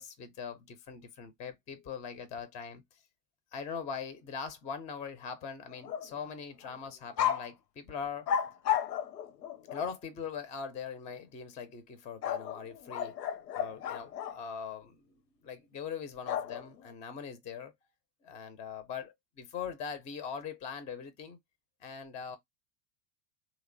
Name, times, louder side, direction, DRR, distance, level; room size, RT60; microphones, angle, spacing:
voice 1, 0.0-3.0 3.5-8.3 9.7-13.2 13.5-17.7 18.2-21.4 21.8-22.4, left 6 dB, 15° left, 0.4 m, -41 dB
sound 1, 5.7-6.3 6.6-6.8 7.2-7.5 8.3-9.9 12.2-14.4 16.3-16.9, left 9 dB, 85° left, 0.6 m, -33 dB
2.8 x 2.0 x 2.5 m
hypercardioid pair, 90°, 47 cm